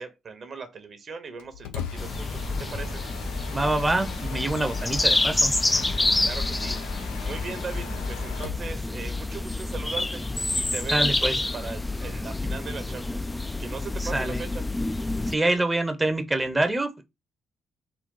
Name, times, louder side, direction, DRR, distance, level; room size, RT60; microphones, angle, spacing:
voice 1, 0.0-3.0 6.2-6.8 7.2-10.3 10.5-13.2 13.6-14.6, right 5 dB, 50° right, 0.9 m, -38 dB
Mechanisms, 1.4-8.7, left 7 dB, 80° left, 0.5 m, -39 dB
sound 1, 2.0-15.4, left 2 dB, 15° left, 0.4 m, -28 dB
voice 2, 3.5-5.5 10.9-11.4 14.0-14.4 15.3-17.0, right 2 dB, 15° right, 0.7 m, -26 dB
3.9 x 2.3 x 3.7 m
hypercardioid pair, 50°, 0 cm